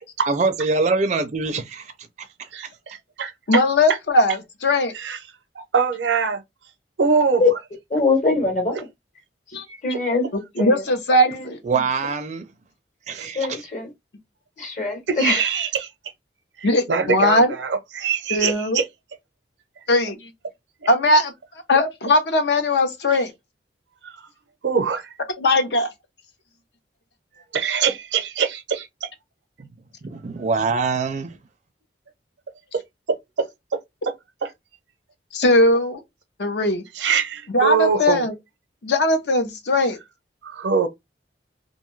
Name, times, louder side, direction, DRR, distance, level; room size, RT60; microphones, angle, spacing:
voice 1, 0.2-1.9 11.6-12.5 13.1-13.6 29.6-29.7 30.0-31.4, right 4 dB, 40° right, 0.4 m, -24 dB
voice 2, 2.5-3.6 4.9-5.2 5.6-6.4 7.0-7.6 8.7-8.8 9.7-9.8 13.1-13.3 15.1-15.9 16.6-18.8 24.0-24.1 24.6-25.1 27.5-29.1 33.4-33.5 34.0-34.1 34.4-34.5 37.0-38.2 40.4-40.9, right 6 dB, 90° right, 0.6 m, -23 dB
voice 3, 3.5-4.9 9.5-9.6 10.6-11.6 16.6-17.5 18.3-18.8 19.9-20.2 20.9-21.3 21.7-23.3 25.4-25.9 35.3-36.0 36.4-36.8 37.5-38.3 38.8-40.0, left 1 dB, 70° left, 0.7 m, -19 dB
voice 4, 7.9-8.9 9.8-10.3 10.6-10.8 13.3-13.9 14.6-15.4, left 3 dB, 45° left, 1.1 m, -22 dB
2.6 x 2.2 x 3.1 m
head